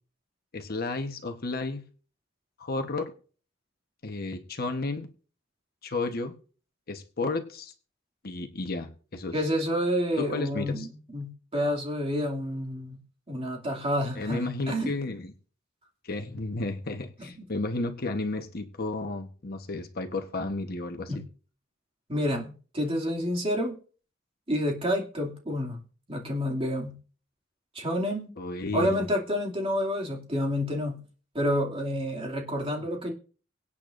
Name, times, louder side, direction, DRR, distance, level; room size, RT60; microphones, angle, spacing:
voice 1, 0.5-1.8 2.6-3.1 4.0-5.1 5.8-6.3 6.9-7.7 8.2-9.3 10.3-10.9 14.1-15.3 16.0-21.2 28.4-29.0, left 2 dB, 50° left, 5 dB, 1.2 m, -32 dB
voice 2, 9.3-13.0 13.3-14.9 21.1-21.2 22.1-23.8 24.5-25.8 26.1-27.0 27.7-28.3 28.7-31.0 31.3-33.1, equal, 30° right, 1 dB, 2.5 m, -29 dB
24.0 x 8.7 x 2.6 m, 0.40 s
head